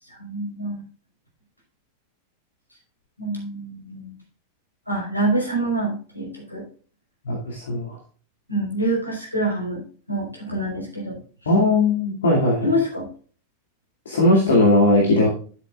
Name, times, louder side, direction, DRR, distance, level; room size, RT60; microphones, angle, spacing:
voice 1, 0.1-0.8 3.2-4.1 4.9-6.6 8.5-11.2 12.6-13.1, right 1 dB, 85° left, -1 dB, 4.7 m, -26 dB
voice 2, 7.2-8.0 11.5-12.7 14.1-15.3, left 2 dB, 65° left, -2 dB, 2.3 m, -18 dB
12.0 x 7.8 x 2.4 m, 0.41 s
figure-of-eight pair, 90°, 0 cm